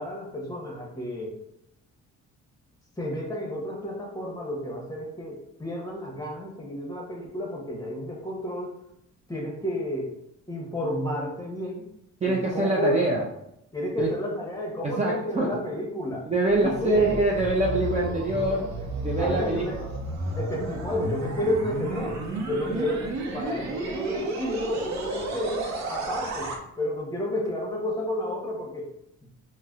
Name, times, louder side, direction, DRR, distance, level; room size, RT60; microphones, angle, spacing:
voice 1, 0.0-1.3 3.0-8.7 9.3-10.1 10.5-11.8 12.2-13.0 13.7-16.3 16.6-17.1 19.2-19.8 20.4-22.2 22.5-23.0 23.3-28.9 29.2-29.3, left 1 dB, 10° left, -1 dB, 1.0 m, -31 dB
voice 2, 12.2-13.2 14.0-14.1 14.8-15.5 16.3-18.7 18.9-19.6, right 2 dB, 25° right, -3 dB, 0.5 m, -24 dB
sound 1, 16.5-26.6, right 2 dB, 65° right, 0.7 m, -32 dB
4.0 x 2.1 x 2.4 m, 0.79 s
cardioid pair, 90°, 30 cm